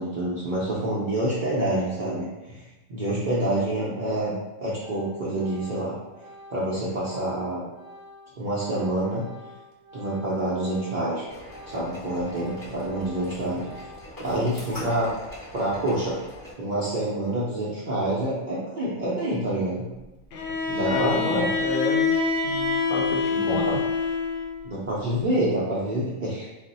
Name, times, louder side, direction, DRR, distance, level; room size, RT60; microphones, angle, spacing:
voice 1, 0.0-2.6 2.9-4.3 4.6-6.0 6.5-7.6 8.4-9.3 9.9-11.2 11.7-13.7 14.2-15.1 15.5-16.2 16.6-19.9 20.7-21.5 23.4-23.7 24.6-26.5, right 1 dB, 60° right, -8 dB, 0.5 m, -27 dB
Organ, 4.8-11.1 11.4-14.3, left 1 dB, 80° right, 1.0 m, -47 dB
sound 1, 11.2-16.5, left 1 dB, 20° left, 0.8 m, -42 dB
Bowed string instrument, 20.3-24.6, left 4 dB, 65° left, 0.6 m, -25 dB
voice 2, 20.8-22.2 22.4-23.6, left 2 dB, 85° left, 1 dB, 1.0 m, -30 dB
2.4 x 2.0 x 3.9 m, 1.0 s
omnidirectional pair, 1.4 m